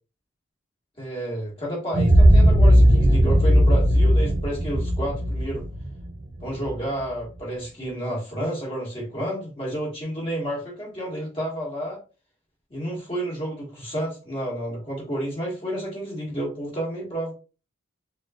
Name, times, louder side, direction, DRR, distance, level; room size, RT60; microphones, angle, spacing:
voice 1, 1.0-5.6 6.4-12.0 12.7-17.3, right 1 dB, 25° left, -4 dB, 1.8 m, -30 dB
sound 1, 1.9-6.7, equal, 30° right, 0.8 m, -17 dB
6.6 x 2.3 x 2.3 m, 0.32 s
head